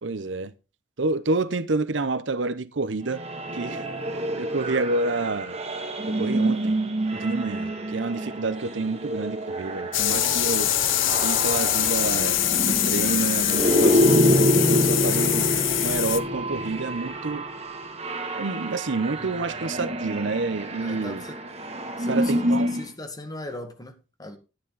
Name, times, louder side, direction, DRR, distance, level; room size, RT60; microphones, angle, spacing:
voice 1, 0.0-0.5 1.0-3.2 3.5-3.8 4.4-5.6 6.0-6.8 7.1-10.7 11.2-15.5 15.8-17.4 18.3-21.2 22.1-22.7, right 3 dB, 70° right, 0.8 m, -28 dB
sound 1, 3.1-22.9, equal, 35° right, 2.2 m, -27 dB
sound 2, 9.9-16.2, left 13 dB, 90° left, 0.8 m, -24 dB
voice 2, 20.8-21.4 22.0-24.4, left 1 dB, 20° left, 1.9 m, -39 dB
11.5 x 10.5 x 4.0 m
head